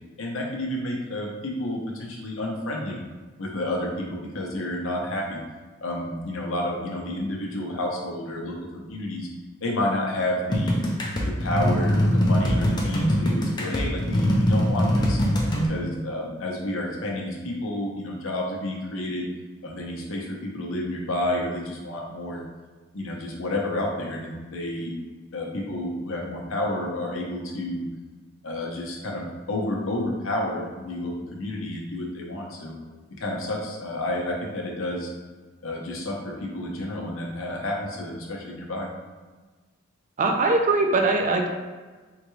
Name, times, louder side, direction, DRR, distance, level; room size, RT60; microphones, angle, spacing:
voice 1, 0.2-3.0 3.4-5.4 5.8-9.3 9.6-10.8 11.2-15.2 15.6-19.3 19.6-22.4 22.9-24.9 25.3-27.8 28.4-32.8 33.2-35.1 35.6-38.9, left 1 dB, 90° left, -2 dB, 0.7 m, -30 dB
sound 1, 10.5-15.7, equal, 20° left, 0.5 m, -22 dB
voice 2, 40.2-41.5, right 3 dB, 40° right, 3 dB, 0.4 m, -21 dB
3.7 x 2.2 x 3.1 m, 1.4 s
head